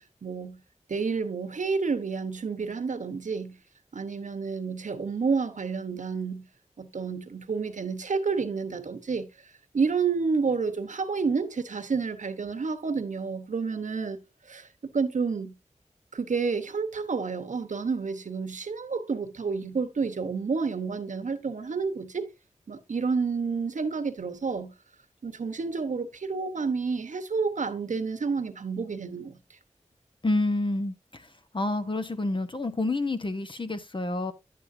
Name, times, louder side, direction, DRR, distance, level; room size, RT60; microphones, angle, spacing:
voice 1, 0.2-0.6 0.9-3.6 3.9-6.5 6.8-9.3 9.7-14.2 14.5-14.7 14.9-15.5 16.1-22.3 22.7-24.7 25.2-29.4, right 5 dB, 85° right, 1.0 m, -29 dB
voice 2, 30.2-31.2 31.5-34.3, left 2 dB, 40° left, 1.0 m, -28 dB
10.0 x 7.6 x 2.6 m
wide cardioid pair, 55°, 13 cm